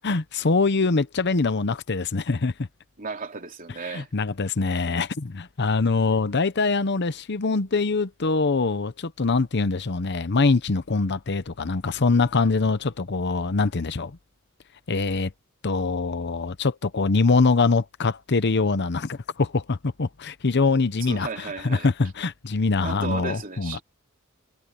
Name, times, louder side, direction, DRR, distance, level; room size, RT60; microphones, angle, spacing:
voice 1, 0.0-2.5 3.9-14.2 14.9-15.3 15.6-23.8, left 3 dB, 55° left, 0.8 m, -23 dB
voice 2, 3.0-4.1 21.1-21.9 22.8-23.8, right 4 dB, 40° right, 3.0 m, -34 dB
head